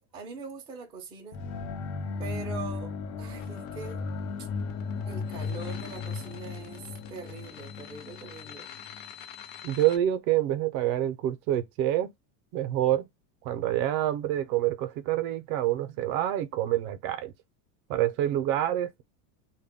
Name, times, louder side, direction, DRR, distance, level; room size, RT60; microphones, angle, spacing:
voice 1, 0.0-1.4 2.2-4.0 4.4-4.5 5.1-8.7, right 4 dB, 10° right, 0.4 m, -42 dB
sound 1, 1.3-9.1, left 4 dB, 90° left, 1.0 m, -36 dB
sound 2, 3.4-10.0, left 9 dB, 50° left, 0.7 m, -47 dB
voice 2, 9.6-12.1 12.5-13.1 13.4-17.3 17.9-19.0, right 12 dB, 60° right, 0.6 m, -27 dB
2.2 x 2.1 x 3.4 m
supercardioid pair, 150°, 49 cm